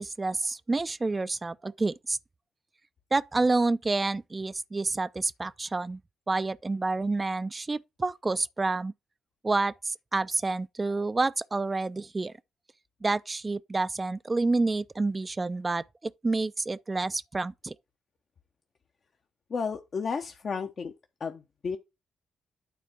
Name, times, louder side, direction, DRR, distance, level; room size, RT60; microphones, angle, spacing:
voice 1, 0.0-2.2 3.1-6.0 6.3-8.9 9.4-12.3 13.0-15.8 16.2-17.7, right 3 dB, 30° right, 0.4 m, -28 dB
voice 2, 19.5-20.9 21.2-21.8, left 5 dB, 50° left, 0.7 m, -32 dB
9.3 x 3.4 x 5.7 m
hypercardioid pair, 45°, 0 cm